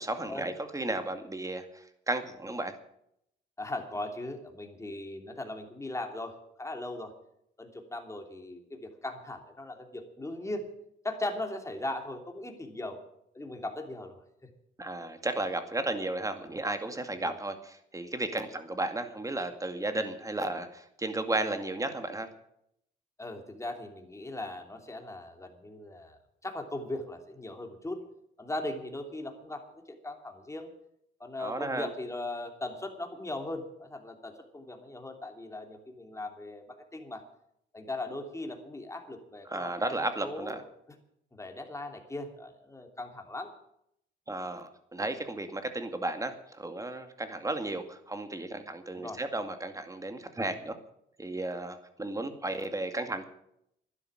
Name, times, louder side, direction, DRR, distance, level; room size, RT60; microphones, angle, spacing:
voice 1, 0.0-2.7 14.8-17.5 17.9-22.3 31.4-31.9 39.5-40.6 44.3-50.7 51.2-53.2, right 2 dB, 15° right, 8 dB, 2.2 m, -34 dB
voice 2, 3.6-7.1 7.6-10.7 11.0-13.0 13.3-14.1 14.4-14.5 17.1-17.4 23.2-28.0 28.4-30.7 31.2-37.2 37.7-40.7 41.3-43.5 48.9-49.2, left 2 dB, 15° left, 4 dB, 3.1 m, -39 dB
12.5 x 10.5 x 9.0 m, 0.74 s
cardioid pair, 90°, 20 cm